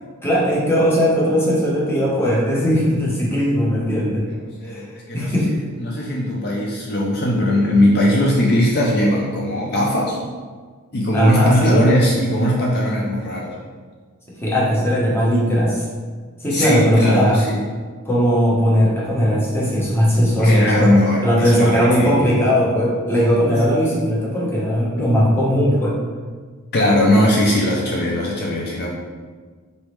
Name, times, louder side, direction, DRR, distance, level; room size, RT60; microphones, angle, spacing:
voice 1, 0.2-4.2 4.6-4.8 5.1-5.5 11.1-11.7 14.4-15.8 16.4-17.4 18.0-20.9 21.2-26.0, equal, 10° left, -6 dB, 0.9 m, -18 dB
voice 2, 4.6-5.3 5.8-10.2 10.9-13.5 16.5-17.6 20.4-22.3 26.7-28.9, left 1 dB, 45° left, -3 dB, 0.5 m, -19 dB
4.1 x 3.5 x 3.1 m, 1.5 s
head